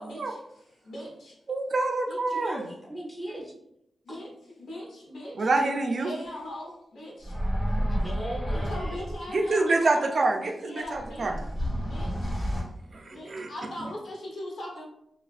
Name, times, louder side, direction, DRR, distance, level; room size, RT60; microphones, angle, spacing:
voice 1, 0.0-1.3 2.1-2.2 4.0-4.3 4.6-5.5 5.9-7.3 8.5-10.0 10.6-11.3 11.9-12.3 13.0-14.8, left 1 dB, 80° left, -3 dB, 0.9 m, -40 dB
voice 2, 1.5-2.6 5.4-6.1 9.3-11.4 12.9-13.5, right 2 dB, 45° right, 4 dB, 0.3 m, -26 dB
voice 3, 2.3-3.5 4.1-4.2 7.8-9.1, right 1 dB, 15° left, -3 dB, 0.7 m, -38 dB
sound 1, 7.2-9.3 10.8-12.6, equal, 45° left, 1.1 m, -30 dB
2.9 x 2.4 x 2.4 m, 0.78 s
wide cardioid pair, 155°, 0 cm